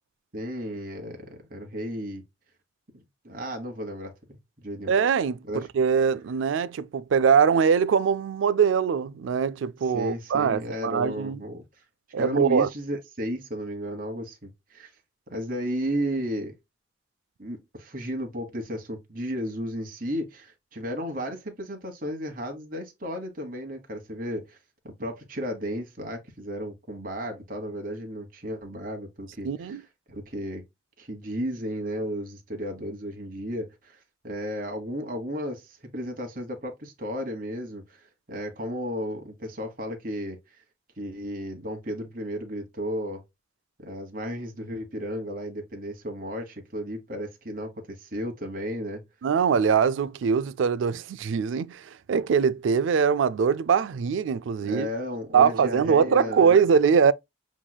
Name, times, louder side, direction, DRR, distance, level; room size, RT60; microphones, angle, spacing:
voice 1, 0.3-2.2 2.9-4.1 4.6-4.9 5.5-5.7 9.8-11.6 12.2-14.9 15.3-16.5 17.4-24.6 24.8-29.8 30.1-30.6 31.0-40.4 41.0-43.2 43.8-49.0 54.6-56.6, equal, 45° right, 1.3 m, -34 dB
voice 2, 4.9-11.4 12.1-12.7 29.4-29.8 49.2-54.9 55.3-57.1, right 6 dB, 80° right, 0.3 m, -22 dB
7.1 x 3.1 x 2.2 m
head